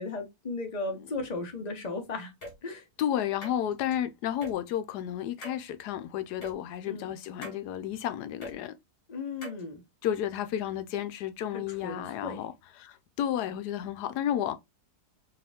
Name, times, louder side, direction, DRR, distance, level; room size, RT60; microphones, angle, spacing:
voice 1, 0.0-2.3 2.6-2.9 6.9-7.2 9.1-9.8 11.5-12.5, left 3 dB, 30° left, 1.1 m, -36 dB
sound 1, 2.4-2.5 3.4-3.9 4.4-4.5 5.4-5.6 6.4-6.5 7.4-7.6 8.4-8.5 9.4-9.6, left 1 dB, 45° left, 1.8 m, -42 dB
voice 2, 3.0-8.7 10.0-12.5 12.8-14.6, left 10 dB, 85° left, 1.1 m, -32 dB
4.7 x 3.0 x 3.5 m
omnidirectional pair, 1.7 m